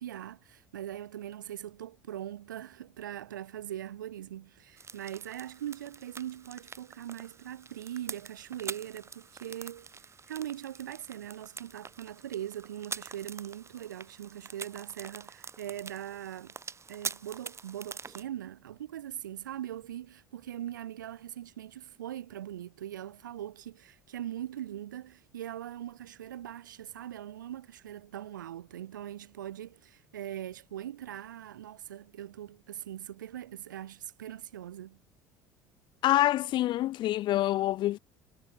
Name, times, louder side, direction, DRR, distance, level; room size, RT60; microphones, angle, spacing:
voice 1, 0.0-9.9 10.3-16.5 16.9-35.0, right 11 dB, 80° right, 2.6 m, -41 dB
sound 1, 4.8-18.2, right 5 dB, 25° right, 5.0 m, -45 dB
voice 2, 36.0-38.0, left 15 dB, 50° left, 0.5 m, -26 dB
hypercardioid pair, 65°, 10 cm